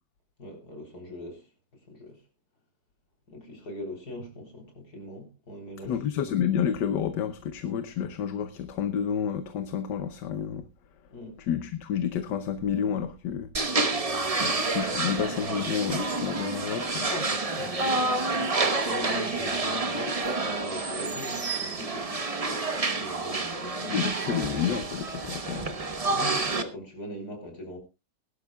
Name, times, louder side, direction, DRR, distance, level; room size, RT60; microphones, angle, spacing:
voice 1, 0.4-1.5 1.9-2.2 3.3-6.0 11.1-11.4 14.0-14.6 17.0-24.3 26.0-27.8, left 1 dB, 60° left, 4.4 m, -41 dB
voice 2, 5.8-10.7 11.5-13.5 14.4-17.1 23.9-25.7, left 8 dB, 75° left, 1.5 m, -30 dB
sound 1, 13.5-26.6, right 3 dB, 25° right, 1.0 m, -29 dB
21.0 x 12.0 x 2.4 m
omnidirectional pair, 1.9 m